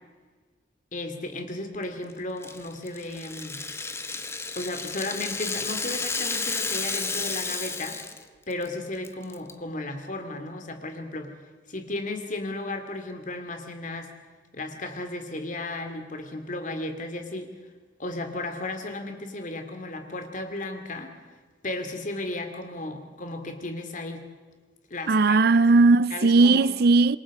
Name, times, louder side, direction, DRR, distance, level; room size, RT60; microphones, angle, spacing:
voice 1, 0.9-3.6 4.5-8.0 8.5-11.3 11.7-14.1 14.5-17.5 18.0-21.2 21.6-24.2 24.9-25.4 26.1-26.7, left 2 dB, 45° left, 2.6 m, -34 dB
Rattle (instrument), 2.4-8.2 8.5-8.7 9.0-9.5, left 4 dB, 15° left, 1.1 m, -32 dB
voice 2, 25.1-27.2, right 3 dB, 60° right, 0.5 m, -18 dB
27.0 x 22.0 x 5.0 m
head